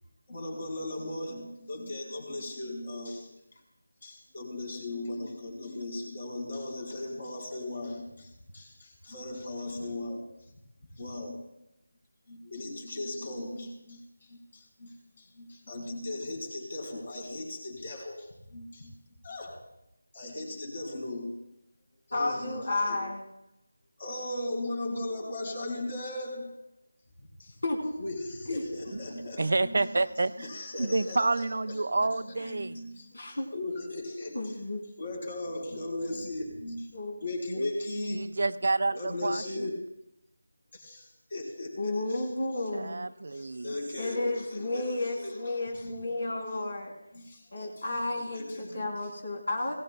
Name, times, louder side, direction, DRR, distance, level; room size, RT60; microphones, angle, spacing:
voice 1, 0.3-3.6 4.0-10.6 10.9-11.5 12.3-18.9 19.2-19.7 20.1-21.4 22.1-23.1 24.0-26.7 27.2-27.6 28.0-30.0 30.4-34.6 35.0-38.3 38.9-39.9 40.7-42.3 43.3-49.1, left 1 dB, 50° left, -1 dB, 4.4 m, -38 dB
voice 2, 22.1-23.2 27.6-27.9 28.5-28.6 32.4-32.5 33.1-33.5 34.3-34.8 36.9-37.2 37.6-37.7 41.8-43.0 44.0-46.9 47.5-49.7, left 2 dB, 70° left, 1 dB, 3.0 m, -32 dB
voice 3, 29.4-30.5 30.8-32.8 38.2-39.7 42.7-43.7, right 3 dB, 60° right, 14 dB, 0.5 m, -29 dB
20.0 x 17.5 x 2.2 m, 0.85 s
figure-of-eight pair, 165°, 0 cm